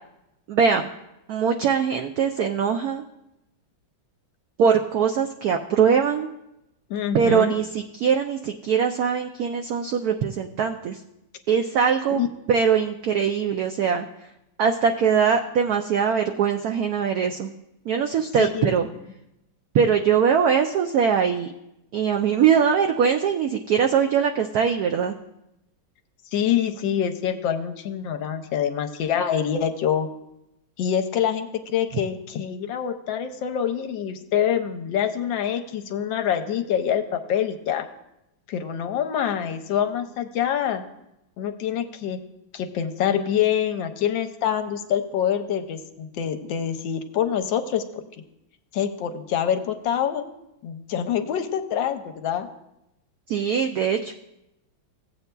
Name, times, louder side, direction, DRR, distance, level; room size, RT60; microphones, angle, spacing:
voice 1, 0.5-0.9 1.3-3.0 4.6-6.3 7.1-11.0 11.5-12.2 12.5-14.1 14.6-17.5 17.9-18.9 19.7-21.5 21.9-25.1 53.3-54.1, right 7 dB, 85° right, 4 dB, 0.8 m, -22 dB
voice 2, 6.9-7.5 12.1-12.3 18.4-18.7 26.3-30.1 30.8-37.9 38.5-40.8 41.4-42.2 42.5-48.0 48.7-50.3 50.6-52.5, left 9 dB, 75° left, 7 dB, 1.3 m, -25 dB
16.0 x 8.0 x 2.2 m, 0.87 s
omnidirectional pair, 2.2 m